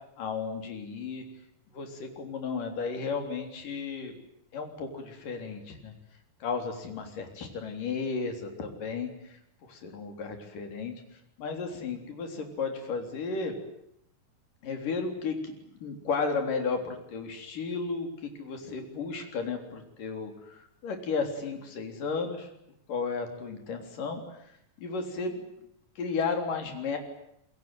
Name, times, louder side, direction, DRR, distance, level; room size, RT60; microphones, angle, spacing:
voice 1, 0.2-1.2 1.7-4.1 4.5-5.9 6.4-9.1 9.7-10.9 11.4-13.5 14.6-15.5 15.8-18.1 18.4-22.5 22.9-24.2 24.8-25.4 26.0-27.0, left 4 dB, 85° left, 5 dB, 5.2 m, -33 dB
27.5 x 23.0 x 9.2 m, 0.74 s
omnidirectional pair, 3.7 m